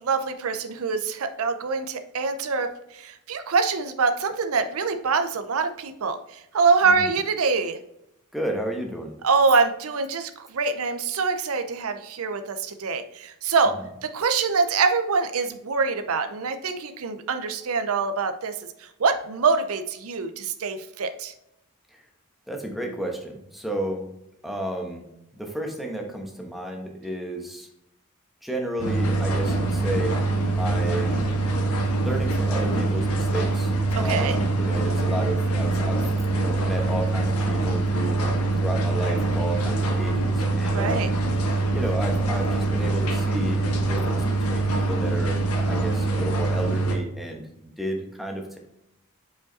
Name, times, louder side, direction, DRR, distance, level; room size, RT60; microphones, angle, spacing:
voice 1, 0.0-7.8 9.2-13.8 14.0-21.3 33.9-34.4 40.7-41.1, right 4 dB, 70° right, 8 dB, 0.6 m, -25 dB
voice 2, 8.3-9.1 22.5-24.1 24.4-25.1 25.4-27.7 28.4-30.2 30.5-31.1 32.0-36.0 36.3-41.2 41.7-47.4 47.8-48.6, right 1 dB, ahead, 1 dB, 1.0 m, -32 dB
sound 1, 28.8-47.0, right 2 dB, 80° left, 1.3 m, -24 dB
5.1 x 4.9 x 4.0 m, 0.83 s
head